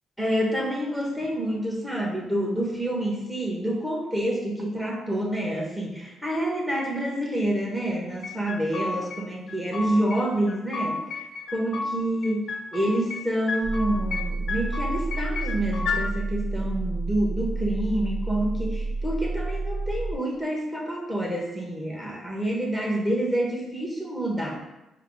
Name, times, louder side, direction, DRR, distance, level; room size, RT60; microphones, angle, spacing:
voice 1, 0.2-11.0 11.5-12.5 12.7-24.6, right 1 dB, 5° right, -3 dB, 1.1 m, -28 dB
sound 1, 8.2-9.2 9.5-10.2 10.5-11.9 12.2-13.2 13.5-14.2 14.5-16.0, left 4 dB, 60° left, 0.5 m, -31 dB
sound 2, 13.6-20.1, right 3 dB, 50° right, 0.5 m, -30 dB
4.6 x 2.0 x 3.7 m, 0.97 s
cardioid pair, 90°, 0 cm